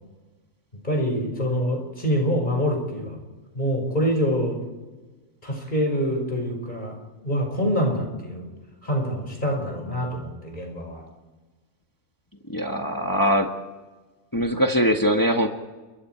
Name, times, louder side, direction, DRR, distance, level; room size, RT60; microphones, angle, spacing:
voice 1, 0.8-3.2 3.5-4.6 5.4-6.9 7.2-8.5 8.8-11.0, equal, 30° left, 1 dB, 5.5 m, -25 dB
voice 2, 12.5-13.5 14.3-15.5, equal, 15° left, 4 dB, 1.5 m, -22 dB
29.0 x 23.5 x 4.6 m, 1.3 s
omnidirectional pair, 1.5 m